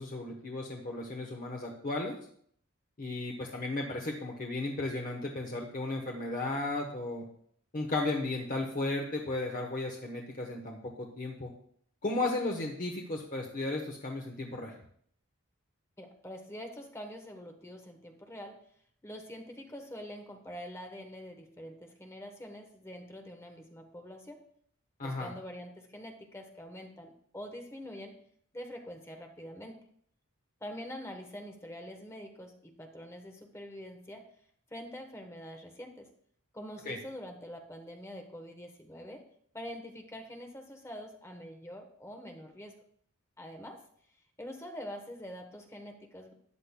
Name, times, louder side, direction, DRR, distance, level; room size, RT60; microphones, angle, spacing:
voice 1, 0.0-2.1 3.0-7.2 7.7-11.5 12.0-14.7 25.0-25.3 36.8-37.0, left 2 dB, 40° left, 1 dB, 1.0 m, -35 dB
voice 2, 16.0-18.6 19.0-24.4 25.0-28.1 28.5-29.7 30.6-34.2 34.7-36.1 36.5-39.2 39.5-42.7 43.4-43.8 44.4-46.3, equal, 15° left, 3 dB, 1.1 m, -45 dB
13.5 x 9.9 x 2.2 m, 0.64 s
head